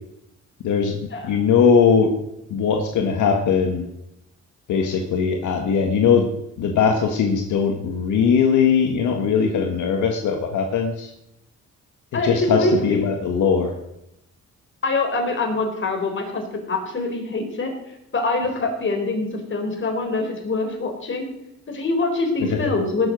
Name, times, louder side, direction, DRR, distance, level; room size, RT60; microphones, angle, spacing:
voice 1, 1.2-2.1 2.5-3.9 4.7-6.3 6.6-11.1 12.2-13.8 22.4-22.6, left 6 dB, 75° left, 3 dB, 1.7 m, -20 dB
voice 2, 12.1-13.0 14.8-16.4 16.7-17.7 18.1-21.3 21.7-23.1, left 2 dB, 40° left, 3 dB, 4.2 m, -24 dB
17.5 x 7.2 x 6.2 m, 0.83 s
cardioid pair, 90°, 30 cm